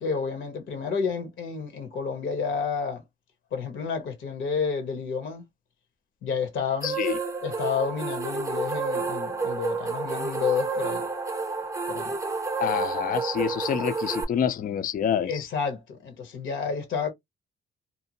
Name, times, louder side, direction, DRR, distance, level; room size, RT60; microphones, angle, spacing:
voice 1, 0.0-3.0 3.5-5.4 6.2-7.0 7.4-11.1 11.9-12.2 15.2-17.1, left 6 dB, 75° left, 1.1 m, -30 dB
voice 2, 6.8-7.2 12.6-15.5, left 8 dB, 45° left, 0.4 m, -27 dB
sound 1, 6.8-14.2, right 4 dB, 15° right, 0.6 m, -30 dB
2.7 x 2.1 x 2.7 m
cardioid pair, 90°, 20 cm